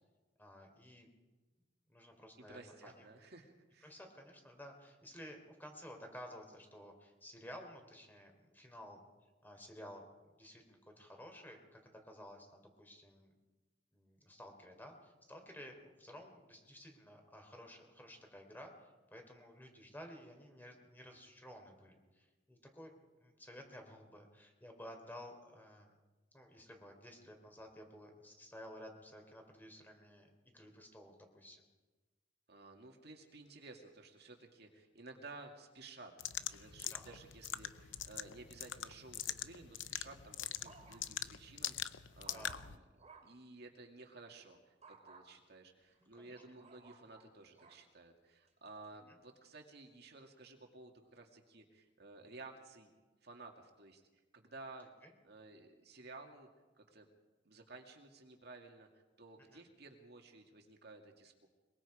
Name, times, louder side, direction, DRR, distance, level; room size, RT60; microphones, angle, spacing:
voice 1, 0.4-1.1 1.9-3.1 3.8-9.0 9.4-10.1 10.4-13.3 13.9-22.9 23.2-26.0 26.3-31.6 36.8-37.2 37.8-37.9 42.3-42.7 46.2-46.4 49.1-49.2 55.0-55.1 59.5-59.7, equal, 10° left, 3 dB, 3.7 m, -54 dB
voice 2, 2.4-4.0 32.5-36.1 36.4-42.8 43.2-52.9 53.2-54.0 54.3-54.9 55.2-56.5 56.8-57.1 57.5-61.5, right 3 dB, 60° right, 3 dB, 2.2 m, -55 dB
sound 1, 36.2-42.8, left 11 dB, 90° left, 0.8 m, -43 dB
sound 2, 40.0-41.3 41.8-43.4 44.8-45.3 45.9-47.8 48.5-48.9, right 4 dB, 35° right, 2.8 m, -60 dB
23.5 x 22.5 x 5.0 m, 1.2 s
head